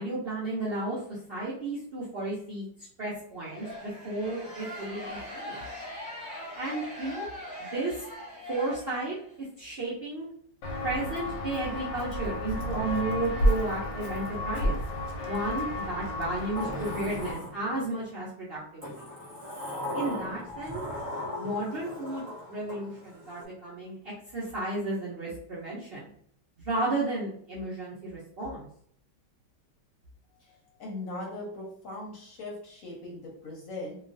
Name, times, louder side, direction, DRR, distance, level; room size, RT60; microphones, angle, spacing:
voice 1, 0.0-2.7 3.0-5.6 6.5-7.3 7.6-8.0 8.5-9.2 9.6-10.3 10.8-14.8 15.2-18.9 19.9-20.8 21.4-26.1 26.6-28.7, right 2 dB, 75° right, -7 dB, 0.5 m, -33 dB
sound 1, 3.4-9.3, left 1 dB, 15° left, 1.0 m, -41 dB
Walk footsteps, 10.6-17.3, equal, 85° left, 1.3 m, -31 dB
Sliding door, 16.5-18.0 18.8-23.4, left 1 dB, 30° right, 0.6 m, -38 dB
voice 2, 30.8-34.0, left 2 dB, 60° left, -2 dB, 1.0 m, -39 dB
3.0 x 2.3 x 2.5 m, 0.63 s
omnidirectional pair, 1.9 m